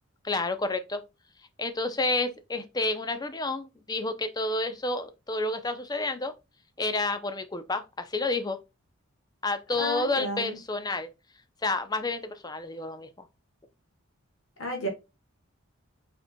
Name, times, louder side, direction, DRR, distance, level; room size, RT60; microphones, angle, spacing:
voice 1, 0.2-1.0 1.6-6.3 6.8-8.6 9.4-11.1 11.6-13.1, left 2 dB, 20° left, 0.6 m, -30 dB
voice 2, 9.8-10.6 14.6-14.9, right 1 dB, 65° left, 1.3 m, -32 dB
5.4 x 4.4 x 2.2 m
head